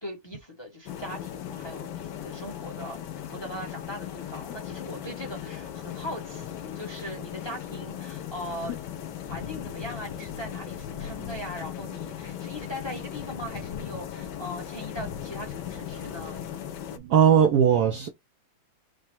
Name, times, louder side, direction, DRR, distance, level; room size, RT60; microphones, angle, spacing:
voice 1, 0.0-8.8 9.3-16.4, equal, 25° left, 0.6 m, -40 dB
sound 1, 0.9-17.0, left 9 dB, 70° left, 1.0 m, -37 dB
voice 2, 17.0-18.1, right 8 dB, 80° right, 0.8 m, -19 dB
4.9 x 2.1 x 4.4 m
omnidirectional pair, 2.4 m